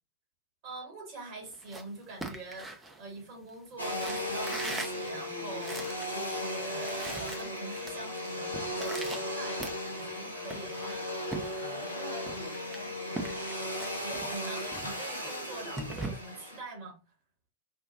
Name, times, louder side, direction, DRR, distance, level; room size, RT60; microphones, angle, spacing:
voice 1, 0.6-9.6 9.9-11.1 11.4-11.7 14.0-17.0, right 3 dB, 45° right, 1.2 m, -44 dB
sound 1, 1.5-3.5 3.9-6.1 6.4-6.5 6.7-7.9 8.2-10.1 10.5-12.0 12.3-16.1, right 2 dB, 10° right, 0.5 m, -41 dB
Domestic sounds home sounds, 3.8-16.6, left 1 dB, 90° right, 0.6 m, -36 dB
voice 2, 11.6-13.7, left 4 dB, 70° left, 0.4 m, -47 dB
2.6 x 2.2 x 2.8 m
figure-of-eight pair, 90°, 0 cm